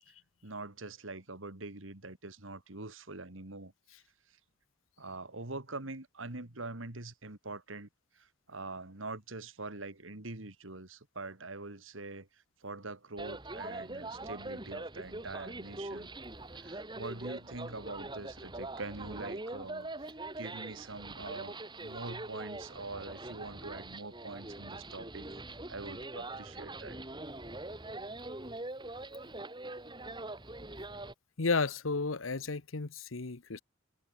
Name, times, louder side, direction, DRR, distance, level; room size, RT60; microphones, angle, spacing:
voice 1, 0.4-3.7 5.0-7.9 8.2-16.1 16.5-20.1 20.4-25.3 25.7-27.0, right 3 dB, 75° right, 2.6 m, -44 dB
sound 1, 13.2-31.1, right 2 dB, 25° right, 3.1 m, -43 dB
voice 2, 31.4-33.6, left 4 dB, 90° left, 1.1 m, -32 dB
head